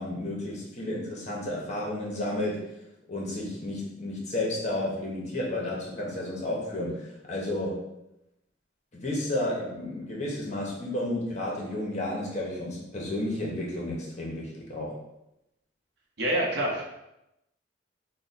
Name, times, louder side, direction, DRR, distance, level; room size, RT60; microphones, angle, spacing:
voice 1, 0.0-2.6 3.1-7.8 8.9-14.9, left 1 dB, 35° left, -3 dB, 0.8 m, -32 dB
voice 2, 16.2-16.8, right 1 dB, 60° right, -2 dB, 0.7 m, -26 dB
3.1 x 2.1 x 3.9 m, 0.88 s
head